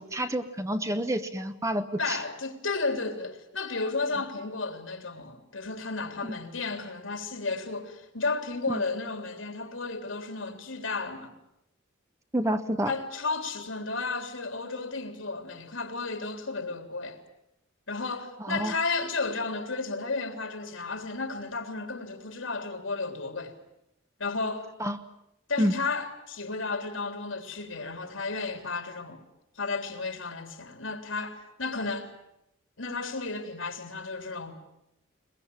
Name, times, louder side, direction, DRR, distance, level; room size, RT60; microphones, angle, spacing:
voice 1, 0.0-2.2 6.2-6.3 8.7-8.8 12.3-12.9 18.4-18.7 24.8-25.0 25.6-25.7, equal, 15° right, 0.9 m, -28 dB
voice 2, 2.0-11.3 12.9-17.2 17.9-23.5 24.2-24.7 25.5-29.2 29.5-32.1 32.8-34.6, left 3 dB, 85° left, 3.5 m, -33 dB
22.0 x 22.0 x 8.9 m
head